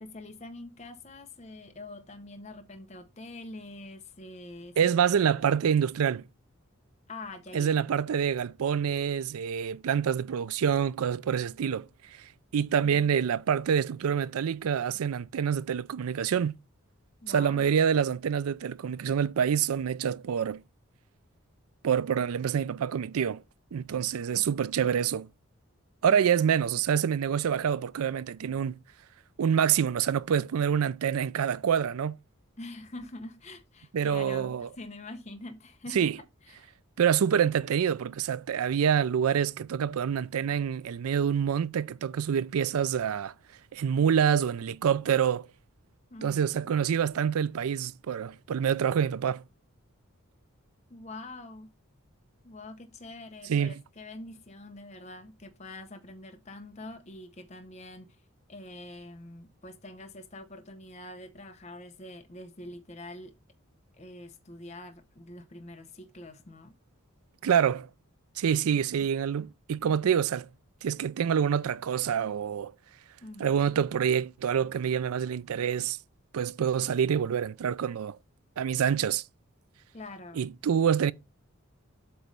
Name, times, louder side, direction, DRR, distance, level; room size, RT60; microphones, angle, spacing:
voice 1, 0.0-5.4 7.1-7.7 12.8-13.1 17.2-17.6 26.5-26.7 32.6-36.1 36.4-36.8 46.1-46.4 50.9-51.7 52.4-58.2 58.5-63.3 63.9-66.7 73.2-73.5 79.9-80.4, left 2 dB, 30° left, 0.7 m, -45 dB
voice 2, 4.8-6.2 7.5-11.9 12.2-16.5 17.3-20.6 21.8-23.4 23.7-25.3 26.0-28.8 29.4-32.2 33.9-34.7 35.9-36.1 37.0-43.3 43.7-45.5 46.2-49.4 53.5-53.7 67.4-67.9 68.4-70.5 70.8-72.7 73.4-76.0 76.3-78.2 78.6-79.2 80.4-81.1, right 8 dB, 85° right, 0.4 m, -26 dB
8.0 x 3.1 x 5.2 m
head